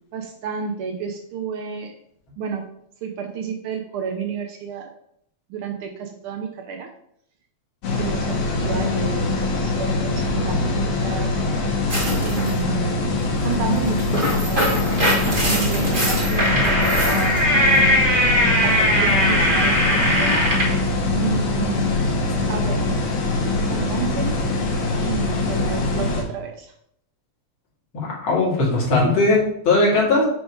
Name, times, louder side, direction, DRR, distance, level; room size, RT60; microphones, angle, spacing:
voice 1, 0.1-1.9 2.4-2.7 3.0-4.9 5.5-6.9 8.0-11.4 12.2-13.1 13.4-14.6 15.2-17.5 18.5-20.4 21.1-21.9 22.5-23.0 23.3-24.4 25.0-26.7, right 7 dB, 90° right, 4 dB, 1.2 m, -30 dB
sound 1, 7.8-26.2, left 2 dB, 75° left, 2.9 m, -23 dB
sound 2, 11.9-12.5 13.9-20.8, equal, 60° right, 0.5 m, -20 dB
voice 2, 27.9-30.2, left 2 dB, 45° left, -4 dB, 2.9 m, -19 dB
9.2 x 3.5 x 4.7 m, 0.71 s
omnidirectional pair, 3.3 m